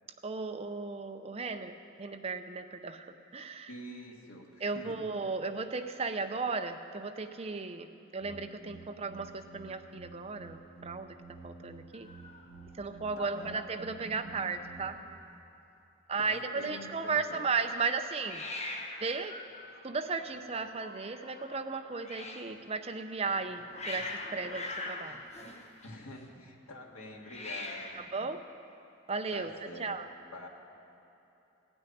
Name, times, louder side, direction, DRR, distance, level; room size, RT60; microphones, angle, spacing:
voice 1, 0.2-1.7 2.0-3.1 3.3-3.7 4.6-11.1 11.4-12.1 12.7-14.9 16.1-18.5 19.0-19.3 19.8-25.2 27.9-28.4 29.1-29.5 29.8-30.1, right 4 dB, 30° right, 7 dB, 0.5 m, -35 dB
voice 2, 3.7-5.0 13.2-13.6 16.2-17.5 25.8-28.0 29.3-30.0 30.3-30.5, left 1 dB, 85° left, 0 dB, 1.8 m, -46 dB
sound 1, 8.2-14.8, right 4 dB, 10° left, 3.4 m, -52 dB
Hiss, 11.9-13.3 13.5-14.0 14.3-14.4 14.5-15.2 18.2-22.5 23.3-26.2 27.2-28.1, left 2 dB, 30° left, 1.1 m, -43 dB
16.0 x 6.2 x 10.0 m, 2.9 s
head